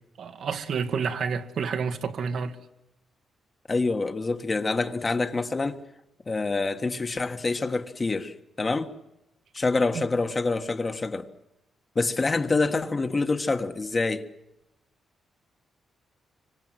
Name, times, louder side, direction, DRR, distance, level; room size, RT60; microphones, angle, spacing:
voice 1, 0.2-2.6 9.9-10.1, right 6 dB, 70° right, 1.9 m, -29 dB
voice 2, 3.7-5.8 6.3-8.9 9.5-11.3 11.9-14.3, left 3 dB, 30° left, 1.5 m, -26 dB
25.5 x 25.5 x 7.7 m
cardioid pair, 105°, 0 cm